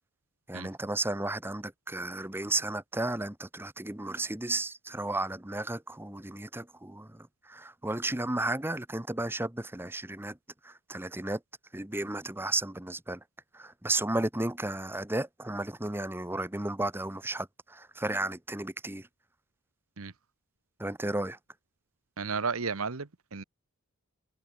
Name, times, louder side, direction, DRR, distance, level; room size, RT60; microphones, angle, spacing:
voice 1, 0.5-10.4 10.6-11.4 11.7-13.2 13.5-19.1 20.8-21.4, right 2 dB, 10° right, 1.1 m, -33 dB
voice 2, 22.2-23.4, right 5 dB, 80° right, 1.1 m, -33 dB
head